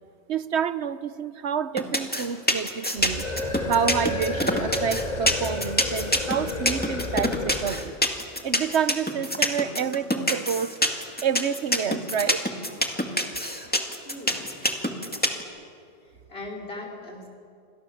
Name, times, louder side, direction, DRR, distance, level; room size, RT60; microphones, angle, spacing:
voice 1, 0.3-3.3 3.7-7.9 8.4-10.8 11.2-12.4, right 7 dB, 85° right, 14 dB, 1.2 m, -28 dB
sound 1, 1.8-15.4, equal, 10° left, 2.1 m, -24 dB
sound 2, 3.0-8.0, left 2 dB, 40° left, 2.1 m, -31 dB
voice 2, 14.0-14.5 16.0-17.3, left 2 dB, 65° left, 1 dB, 4.9 m, -39 dB
28.0 x 26.0 x 7.2 m, 2.4 s
omnidirectional pair, 1.1 m